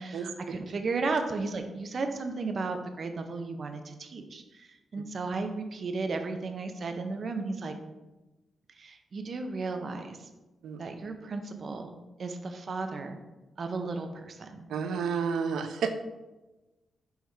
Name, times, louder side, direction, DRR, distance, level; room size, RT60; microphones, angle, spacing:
voice 1, 0.0-7.8 8.8-10.2 10.8-11.9 12.2-13.2 13.6-14.7, right 3 dB, 50° right, 6 dB, 0.7 m, -34 dB
voice 2, 14.7-15.9, right 6 dB, 90° right, 8 dB, 0.6 m, -30 dB
6.3 x 3.4 x 4.8 m, 1.1 s
cardioid pair, 100°, 0 cm